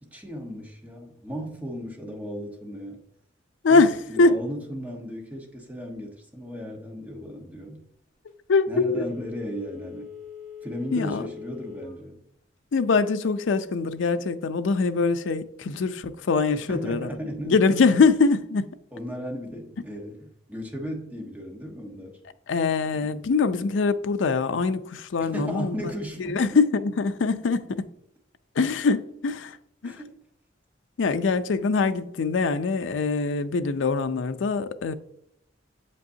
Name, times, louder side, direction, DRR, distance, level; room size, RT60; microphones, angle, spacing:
voice 1, 0.0-3.0 3.7-7.8 8.7-10.1 10.6-12.2 16.5-17.6 18.9-22.2 22.9-23.2 25.3-26.6 29.8-30.2, equal, 10° right, 1.2 m, -36 dB
voice 2, 3.6-4.3 8.5-9.0 10.9-11.2 12.7-17.1 17.4-18.7 22.5-25.9 26.2-27.9 28.6-29.6 29.8-30.0 31.0-34.9, left 4 dB, 75° left, 0.4 m, -23 dB
Telephone, 8.9-12.0 12.4-12.5, left 7 dB, 40° left, 1.9 m, -42 dB
7.6 x 5.3 x 2.7 m
head